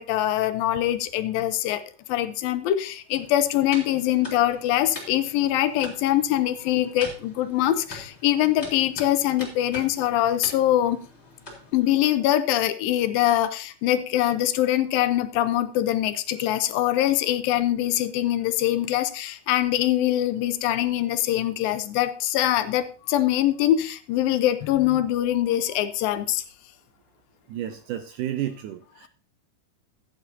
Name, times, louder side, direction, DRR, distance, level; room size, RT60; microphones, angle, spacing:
voice 1, 0.0-1.8 2.1-11.0 11.7-26.4, left 13 dB, 80° left, 11 dB, 2.4 m, -23 dB
sound 1, 3.1-11.9, left 1 dB, 15° left, 3.5 m, -44 dB
voice 2, 27.5-29.1, right 12 dB, 80° right, 8 dB, 1.9 m, -31 dB
15.0 x 9.4 x 2.8 m, 0.37 s
omnidirectional pair, 4.3 m